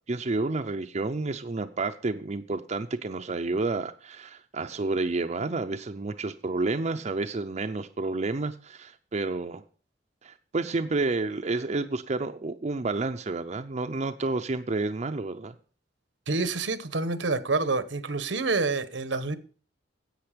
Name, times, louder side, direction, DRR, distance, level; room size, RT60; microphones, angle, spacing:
voice 1, 0.1-9.6 10.2-15.5, right 3 dB, 40° right, 7 dB, 0.5 m, -30 dB
voice 2, 16.3-19.4, right 3 dB, 85° right, 12 dB, 1.0 m, -27 dB
10.5 x 8.0 x 5.1 m, 0.41 s
head